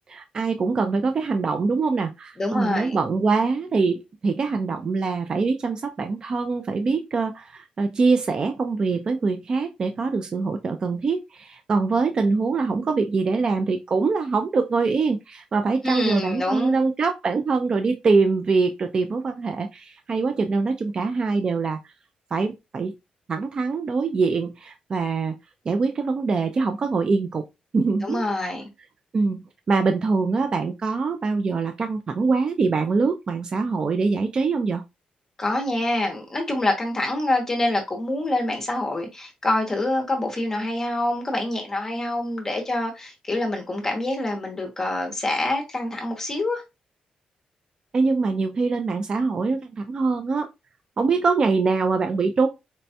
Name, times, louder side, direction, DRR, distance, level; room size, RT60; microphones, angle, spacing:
voice 1, 0.1-21.8 22.3-22.9 23.3-25.4 25.7-27.4 27.7-28.2 29.1-34.8 47.9-50.5 51.0-52.5, right 4 dB, 30° right, 0.3 m, -23 dB
voice 2, 2.4-3.0 15.8-16.8 28.0-28.7 35.4-46.6, left 2 dB, 20° left, 0.7 m, -26 dB
4.1 x 2.2 x 2.6 m
wide cardioid pair, 170°, 3 cm